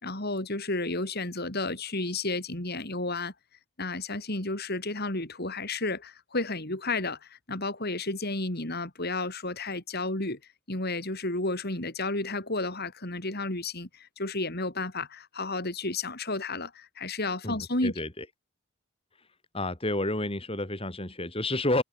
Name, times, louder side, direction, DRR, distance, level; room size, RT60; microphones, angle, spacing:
voice 1, 0.0-3.3 3.8-10.4 10.7-17.9, left 2 dB, 45° left, 4.0 m, -32 dB
voice 2, 17.4-18.3 19.5-21.8, left 2 dB, 25° left, 3.7 m, -30 dB
head